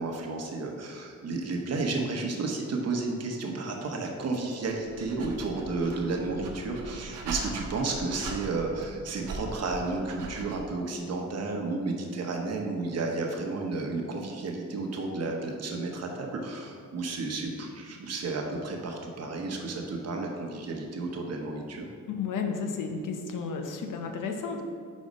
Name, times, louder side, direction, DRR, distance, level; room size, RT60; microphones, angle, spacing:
voice 1, 0.0-21.9, right 3 dB, 55° right, 1 dB, 0.9 m, -32 dB
Dog, 4.7-10.8, right 3 dB, 90° right, 0.9 m, -41 dB
voice 2, 22.2-24.6, left 5 dB, 85° left, 4 dB, 0.7 m, -32 dB
5.3 x 4.1 x 5.1 m, 2.3 s
cardioid pair, 120°, 31 cm